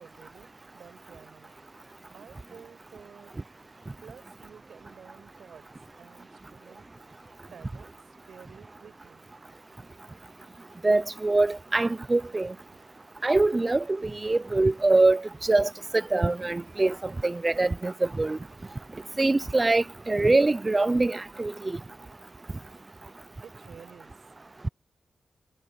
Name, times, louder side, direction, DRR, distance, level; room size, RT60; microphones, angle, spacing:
voice 1, 0.0-1.5 2.1-3.4 4.0-5.7 6.0-9.2 12.4-12.8 13.4-13.5 23.4-24.1, right 7 dB, 75° right, 8.0 m, -52 dB
voice 2, 10.8-12.5 13.2-18.4 19.2-21.8, right 2 dB, 20° right, 0.4 m, -24 dB
wide cardioid pair, 120°, 0 cm